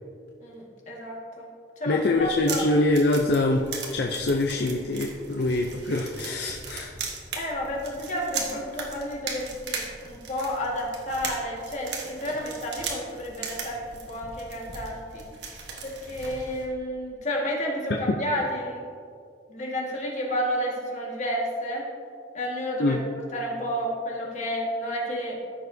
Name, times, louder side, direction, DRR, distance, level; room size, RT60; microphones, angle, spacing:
voice 1, 0.4-1.5 1.8-2.7 7.4-15.3 15.8-18.8 19.5-21.8 22.3-23.0 23.3-25.4, equal, 40° left, -3 dB, 1.7 m, -31 dB
voice 2, 1.8-3.7 3.9-6.9 18.1-18.2 22.8-23.0, left 2 dB, 60° left, 1 dB, 0.5 m, -24 dB
sound 1, 2.2-16.7, right 4 dB, 70° right, 1.3 m, -38 dB
14.5 x 6.5 x 2.7 m, 2.3 s
head